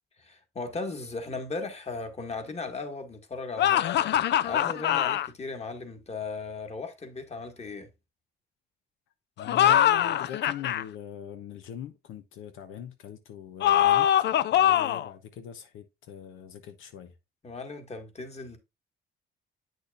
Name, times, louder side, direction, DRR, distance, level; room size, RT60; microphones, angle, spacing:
voice 1, 0.2-4.0 4.4-7.9 17.4-18.6, left 3 dB, 35° left, 1.8 m, -37 dB
sound 1, 3.6-5.3 9.4-10.8 13.6-15.1, left 11 dB, 60° left, 0.4 m, -23 dB
voice 2, 9.4-17.1, left 9 dB, 85° left, 0.9 m, -41 dB
8.4 x 6.3 x 2.5 m
cardioid pair, 90°, 20 cm